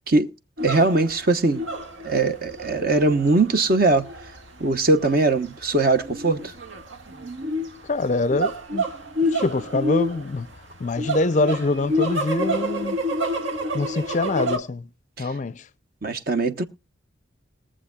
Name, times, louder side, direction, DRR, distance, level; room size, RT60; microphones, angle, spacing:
voice 1, 0.6-1.6 2.0-4.0 4.6-6.5 15.2-15.3 16.0-16.6, right 3 dB, 50° right, 1.0 m, -20 dB
sound 1, 0.6-14.6, equal, 75° right, 1.7 m, -28 dB
voice 2, 7.8-8.8 9.3-10.5 10.8-13.0 13.7-14.9 15.2-15.7, left 2 dB, 40° left, 0.5 m, -24 dB
22.0 x 7.5 x 2.3 m
head